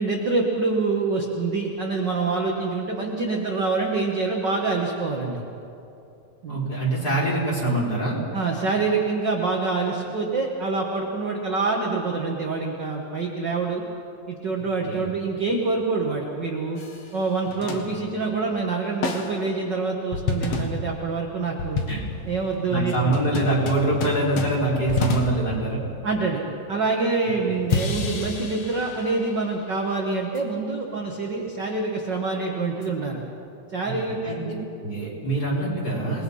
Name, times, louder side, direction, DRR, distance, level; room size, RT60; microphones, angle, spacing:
voice 1, 0.0-5.4 6.4-6.6 8.3-13.8 14.3-16.8 17.1-21.8 22.3-23.2 26.0-33.2 33.7-34.3, right 3 dB, 45° right, 0 dB, 1.5 m, -26 dB
voice 2, 6.5-8.2 14.9-15.1 20.5-20.6 21.9-22.0 22.7-25.8 27.5-27.6 33.8-34.5 34.8-36.2, right 2 dB, 25° left, -5 dB, 5.4 m, -25 dB
sound 1, 16.8-17.2 17.5-18.4 19.0-19.5 20.1-26.3 27.7-29.5 30.4-30.5 32.8-32.9, left 4 dB, 50° left, 2.4 m, -30 dB
28.5 x 20.5 x 5.6 m, 2.8 s
omnidirectional pair, 4.1 m